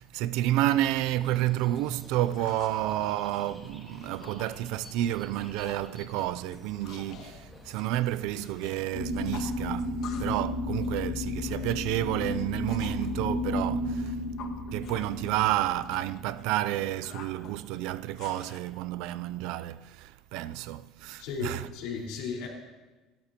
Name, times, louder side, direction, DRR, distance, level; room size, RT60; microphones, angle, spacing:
voice 1, 0.0-14.2 14.7-21.7, right 14 dB, 65° right, 0.4 m, -30 dB
sound 1, 0.5-8.9, left 1 dB, ahead, 1.9 m, -51 dB
sound 2, 0.7-0.8 1.2-2.8 3.2-4.5 4.8-5.1 5.3-5.9 6.2-8.8 9.0-10.4 10.7-13.1 13.6-18.6, left 8 dB, 50° left, 1.5 m, -48 dB
sound 3, 8.9-16.9, left 2 dB, 25° left, 5.2 m, -33 dB
voice 2, 21.2-22.5, left 5 dB, 75° left, 4.3 m, -35 dB
28.0 x 13.0 x 2.9 m
cardioid pair, 180°, 0 cm